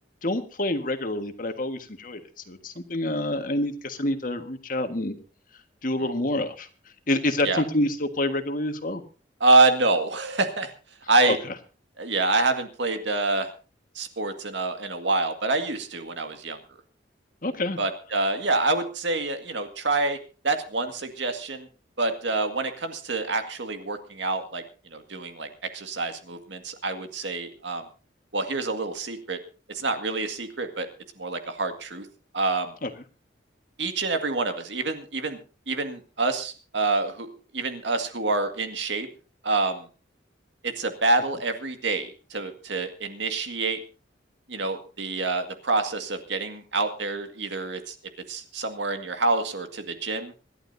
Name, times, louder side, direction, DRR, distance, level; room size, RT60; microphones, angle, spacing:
voice 1, 0.2-2.2 2.5-5.1 5.8-6.7 7.1-9.0 11.3-11.4 17.4-17.8 32.8-32.9, left 1 dB, 50° left, 7 dB, 1.6 m, -27 dB
voice 2, 9.4-10.7 11.1-11.4 12.0-13.5 14.0-16.6 17.8-20.2 20.4-21.7 22.0-24.6 24.9-27.9 28.3-29.4 29.7-30.9 31.2-32.1 32.3-32.7 33.8-35.4 35.7-39.1 39.4-39.9 40.6-43.8 44.5-48.0 48.3-50.3, right 3 dB, 80° right, 7 dB, 2.0 m, -26 dB
26.5 x 11.5 x 2.7 m, 0.35 s
head